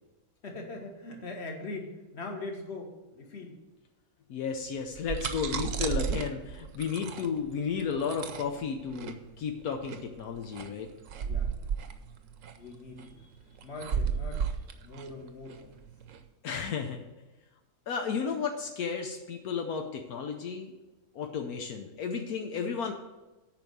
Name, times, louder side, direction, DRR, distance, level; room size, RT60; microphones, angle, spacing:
voice 1, 0.4-3.6 11.2-11.7 12.6-13.1 13.6-14.5 14.8-15.7, left 2 dB, 45° left, 2 dB, 1.8 m, -41 dB
voice 2, 4.3-10.9 16.4-17.0 17.9-20.7 21.1-22.9, left 6 dB, 80° left, 4 dB, 1.3 m, -33 dB
sound 1, 4.8-16.2, right 7 dB, 65° right, 1.1 m, -34 dB
9.0 x 5.3 x 7.7 m, 1.1 s
omnidirectional pair, 1.6 m